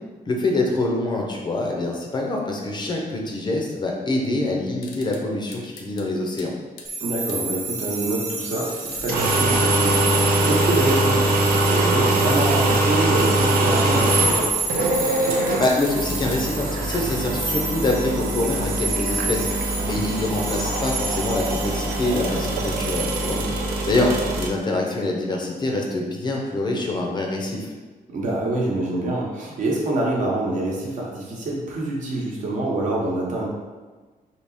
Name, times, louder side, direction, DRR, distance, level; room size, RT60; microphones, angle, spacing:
voice 1, 0.3-6.5 15.6-19.5 19.9-23.4 23.9-24.1 24.4-27.7, left 2 dB, 30° left, 0 dB, 0.5 m, -25 dB
sound 1, 4.8-5.2 5.5-6.1 6.4-6.5 6.8-6.9 7.3-7.4 8.6-11.8 12.2-13.1 13.5-13.8 14.5-16.4, left 5 dB, 80° left, 0.6 m, -42 dB
sound 2, 6.8-23.4, right 3 dB, 20° right, 0.3 m, -30 dB
voice 2, 7.0-14.5 19.8-20.0 23.3-23.4 28.1-33.5, right 2 dB, 55° right, -3 dB, 1.0 m, -26 dB
sound 3, 8.9-24.5, right 2 dB, 85° right, 0.6 m, -23 dB
3.5 x 2.8 x 4.2 m, 1.3 s
cardioid pair, 155°, 15 cm